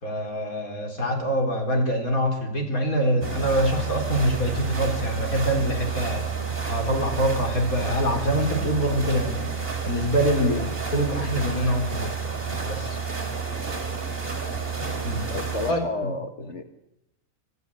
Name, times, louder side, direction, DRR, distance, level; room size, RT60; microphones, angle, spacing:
voice 1, 0.0-6.2 6.7-9.5 9.8-10.7 10.9-12.1 12.7-13.0 15.0-15.2 15.7-16.1, equal, 65° left, 4 dB, 4.4 m, -25 dB
sound 1, 3.2-15.7, right 5 dB, 40° right, 3.1 m, -30 dB
voice 2, 15.3-16.6, left 3 dB, 50° left, 7 dB, 1.7 m, -31 dB
26.5 x 14.5 x 8.6 m, 0.86 s
omnidirectional pair, 1.6 m